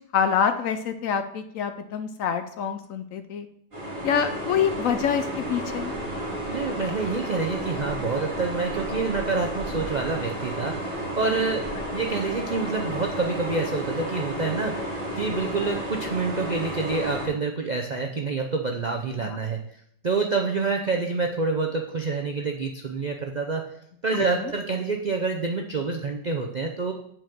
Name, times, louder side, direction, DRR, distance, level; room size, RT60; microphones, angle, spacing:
voice 1, 0.1-3.5 4.0-5.9 19.2-19.4 24.1-24.5, left 7 dB, 65° left, 9 dB, 0.9 m, -26 dB
sound 1, 3.7-17.3, right 1 dB, 30° right, 3.9 m, -32 dB
voice 2, 6.5-11.7 11.9-14.9 15.2-19.6 20.0-23.6 24.0-26.9, right 4 dB, 60° right, 2 dB, 0.4 m, -27 dB
7.7 x 5.0 x 6.0 m, 0.70 s
omnidirectional pair, 1.7 m